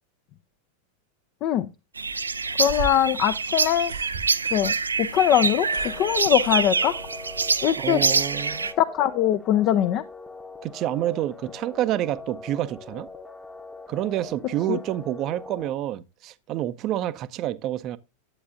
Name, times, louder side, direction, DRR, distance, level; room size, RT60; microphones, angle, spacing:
sound 1, 2.0-8.7, right 4 dB, 75° right, 0.5 m, -26 dB
sound 2, 2.5-5.0 5.3-7.2, right 5 dB, 60° right, 1.1 m, -36 dB
voice 1, 2.6-3.9 4.5-6.9 7.6-8.0 8.8-10.0 14.7-14.8, left 11 dB, 40° left, 0.6 m, -22 dB
sound 3, 5.6-15.7, left 3 dB, 10° left, 1.0 m, -42 dB
voice 2, 7.8-8.7 10.6-13.1 13.9-18.0, right 13 dB, 35° right, 0.6 m, -28 dB
11.0 x 8.6 x 2.4 m
figure-of-eight pair, 90°, 0 cm